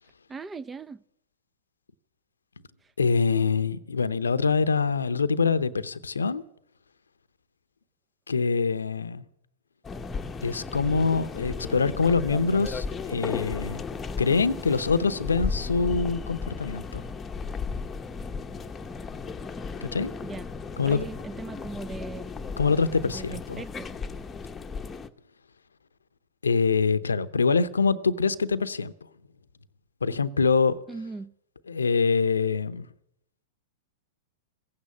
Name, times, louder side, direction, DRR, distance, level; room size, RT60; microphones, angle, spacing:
voice 1, 0.3-1.0 20.2-20.5 20.8-22.3 23.0-23.9 30.9-31.3, right 3 dB, 15° right, 0.5 m, -39 dB
voice 2, 3.0-6.4 8.3-9.2 10.4-13.8 14.2-17.0 19.8-20.1 20.8-21.1 22.6-23.6 26.4-28.9 30.0-30.8 31.7-32.9, left 5 dB, 90° left, 0.7 m, -24 dB
sound 1, 9.8-25.1, left 5 dB, 20° left, 0.9 m, -35 dB
16.0 x 8.7 x 9.6 m
hypercardioid pair, 105°, 0 cm